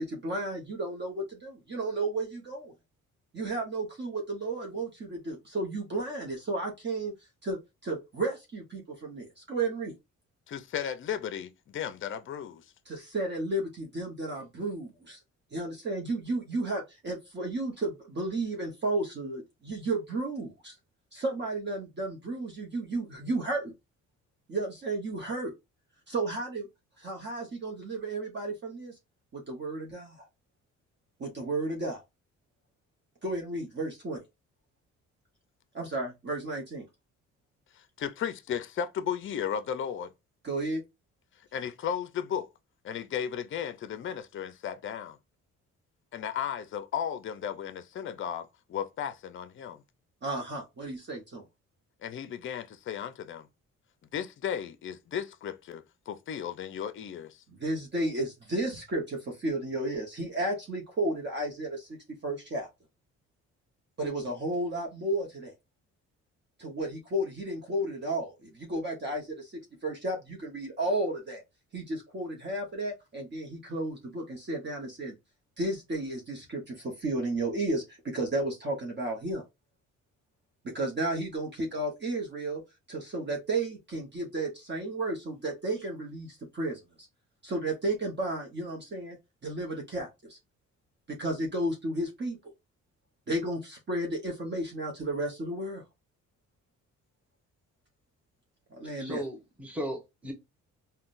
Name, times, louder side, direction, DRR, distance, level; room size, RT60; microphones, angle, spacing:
voice 1, 0.0-2.7 3.3-7.1 7.4-9.9 12.9-15.2 15.5-20.7 21.1-23.7 24.5-25.5 26.1-26.7 27.0-28.9 29.3-30.2 31.2-32.0 33.2-34.2 35.7-36.9 40.4-40.8 50.2-51.4 57.5-61.9 62.2-62.7 64.0-65.5 66.6-71.4 71.7-75.1 75.6-79.4 80.6-82.6 82.9-86.8 87.4-89.2 89.4-90.4 91.1-92.4 93.3-95.8 98.8-99.2, right 2 dB, 35° right, 0.9 m, -33 dB
voice 2, 10.5-12.6 37.7-40.1 41.5-42.5 42.8-45.2 46.1-49.8 52.0-53.5 54.1-57.4, left 8 dB, 45° left, 0.5 m, -35 dB
voice 3, 99.0-100.3, equal, 5° right, 1.1 m, -36 dB
3.7 x 2.2 x 2.5 m
cardioid pair, 90°, 30 cm